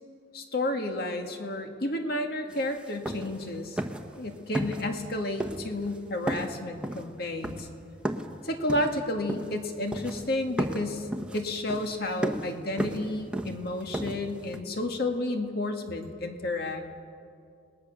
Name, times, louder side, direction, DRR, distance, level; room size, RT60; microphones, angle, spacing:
voice 1, 0.3-3.8 4.2-7.7 8.4-11.1 11.3-16.8, left 1 dB, 55° left, 4 dB, 2.0 m, -31 dB
sound 1, 2.5-2.6 2.9-3.5 3.8-4.2 4.5-5.1 5.4-6.0 6.3-8.4 8.7-9.6 9.9-10.3 10.6-14.6, right 1 dB, 5° right, 1.0 m, -34 dB
30.0 x 20.0 x 6.7 m, 2.5 s
head